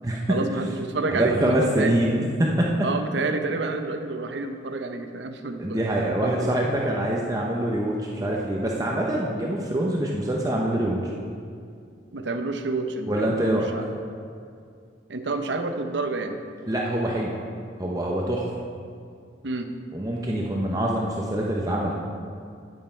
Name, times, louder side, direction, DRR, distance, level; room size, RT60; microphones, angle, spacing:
voice 1, 0.3-1.9 2.8-6.5 12.1-13.8 15.1-16.4 19.4-19.7, right 3 dB, 75° right, 7 dB, 0.7 m, -29 dB
voice 2, 1.1-2.7 5.6-11.0 13.1-13.7 16.7-17.3 17.8-18.5 19.9-21.9, right 1 dB, 20° right, -2 dB, 0.7 m, -25 dB
9.2 x 9.1 x 4.4 m, 2.3 s
head